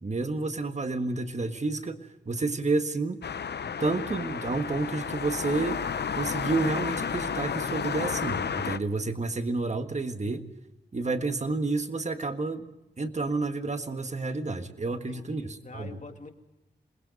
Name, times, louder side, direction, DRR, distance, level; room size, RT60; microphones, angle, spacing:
voice 1, 0.0-3.2 3.8-5.8 6.2-10.5 10.9-12.7 13.0-15.9, right 3 dB, 40° right, 7 dB, 1.6 m, -30 dB
sound 1, 3.2-8.8, left 7 dB, 65° left, 0.7 m, -32 dB
voice 2, 14.9-16.3, left 3 dB, 45° left, 5 dB, 2.1 m, -46 dB
27.5 x 20.5 x 5.3 m, 0.98 s
wide cardioid pair, 105°, 18 cm